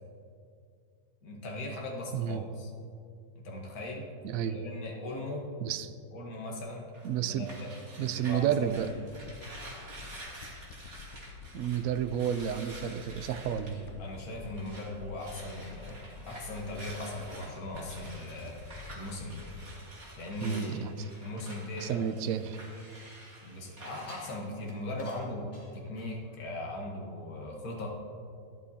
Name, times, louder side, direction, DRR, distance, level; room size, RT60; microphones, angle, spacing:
voice 1, 1.2-2.7 3.4-4.1 4.4-5.5 6.1-6.9 7.3-7.7 8.0-8.7 14.0-18.6 18.9-19.5 20.2-20.9 21.2-22.1 23.4-27.9, left 1 dB, 55° left, -1 dB, 1.8 m, -39 dB
voice 2, 2.1-2.4 4.2-4.6 5.6-5.9 7.0-7.5 8.0-8.9 11.5-13.9 20.4-21.0 21.8-22.6, right 9 dB, 75° right, 10 dB, 0.8 m, -31 dB
sound 1, 6.9-14.9 15.2-24.4, right 1 dB, 40° right, 2.0 m, -49 dB
sound 2, 8.7-21.2, left 5 dB, 85° left, 1.4 m, -49 dB
sound 3, 22.1-23.2 24.1-26.4 26.8-26.9, equal, 25° left, 2.3 m, -55 dB
12.5 x 11.5 x 2.8 m, 2.4 s
omnidirectional pair, 1.9 m